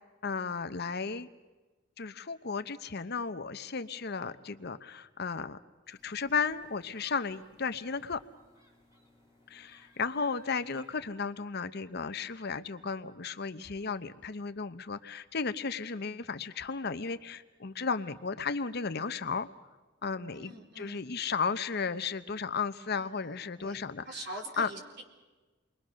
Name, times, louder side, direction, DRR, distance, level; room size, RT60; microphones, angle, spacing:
voice 1, 0.2-1.3 2.0-5.6 5.9-8.2 9.5-19.5 20.0-24.0 24.6-24.7, left 5 dB, 55° left, 12 dB, 0.9 m, -34 dB
sound 1, 5.8-11.0, equal, 15° right, 4.4 m, -62 dB
voice 2, 20.4-21.0 23.0-23.3 23.6-25.0, right 1 dB, 60° right, 1 dB, 4.1 m, -44 dB
28.5 x 22.5 x 6.4 m, 1.2 s
head